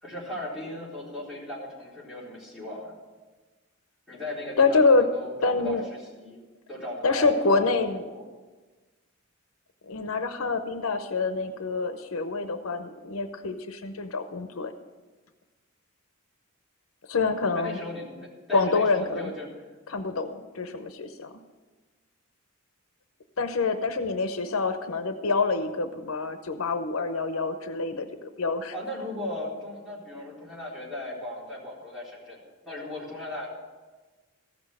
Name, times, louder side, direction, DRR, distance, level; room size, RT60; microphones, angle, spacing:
voice 1, 0.0-3.0 4.1-5.8 6.1-6.4 6.7-8.3 17.5-19.5 28.7-33.5, left 1 dB, ahead, -7 dB, 4.0 m, -37 dB
voice 2, 4.6-5.0 5.4-5.9 7.0-8.1 9.9-14.7 17.1-17.8 18.5-19.3 19.9-21.3 23.4-28.8, left 3 dB, 75° left, 8 dB, 0.7 m, -26 dB
14.5 x 6.1 x 7.7 m, 1.3 s
head